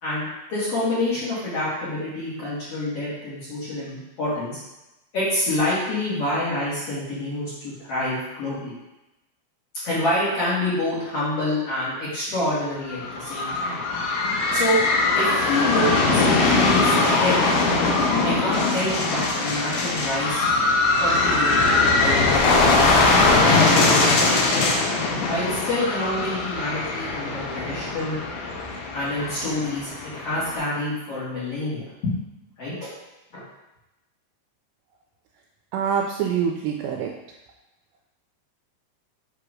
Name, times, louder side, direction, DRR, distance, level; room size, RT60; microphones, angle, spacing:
voice 1, 0.0-4.6 5.1-8.7 9.8-13.8 14.5-14.8 15.1-17.4 18.2-20.5 21.0-24.7 25.3-28.2 28.9-32.1 32.6-32.9 33.3-33.4, left 1 dB, 50° left, -10 dB, 1.9 m, -27 dB
sound 1, 12.9-30.6, left 3 dB, 75° left, 2.4 m, -21 dB
voice 2, 35.7-37.1, right 7 dB, 85° right, 0 dB, 2.7 m, -25 dB
7.8 x 3.0 x 4.8 m, 0.97 s
omnidirectional pair, 5.2 m